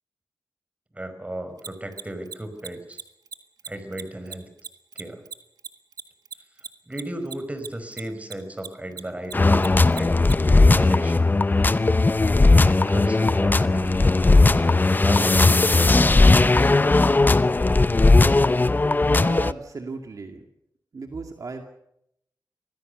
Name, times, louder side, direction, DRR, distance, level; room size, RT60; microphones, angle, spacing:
voice 1, 0.9-3.0 3.6-4.5 4.9-5.2 6.9-10.2 10.6-11.3 12.5-14.7 15.0-16.7, right 1 dB, 20° right, 9 dB, 5.0 m, -35 dB
Mechanisms, 1.6-8.3 8.6-10.3, right 6 dB, 80° right, 1.6 m, -36 dB
sound 1, 9.3-19.5, left 3 dB, 30° left, 0.7 m, -17 dB
voice 2, 19.1-20.4 20.9-21.6, right 4 dB, 60° right, 4 dB, 2.3 m, -35 dB
25.5 x 19.0 x 6.8 m, 0.78 s
cardioid pair, 65°, 7 cm